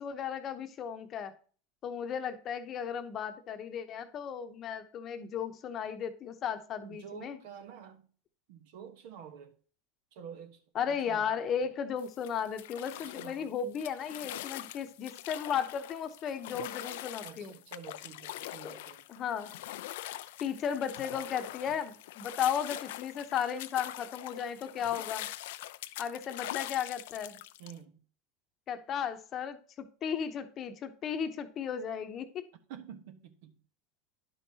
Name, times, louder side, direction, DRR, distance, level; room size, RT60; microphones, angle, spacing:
voice 1, 0.0-1.3 1.8-7.4 10.7-17.5 18.6-18.8 19.1-19.6 20.4-25.3 26.0-27.4 28.7-32.5, left 8 dB, 40° left, 0.9 m, -35 dB
voice 2, 6.8-8.1 8.5-9.6 10.1-11.7 12.9-13.5 17.2-19.1 27.6-28.0 32.7-33.6, right 8 dB, 70° right, 1.1 m, -49 dB
sound 1, 12.0-27.7, left 15 dB, 75° left, 0.4 m, -43 dB
11.0 x 5.5 x 2.8 m
hypercardioid pair, 100°, 0 cm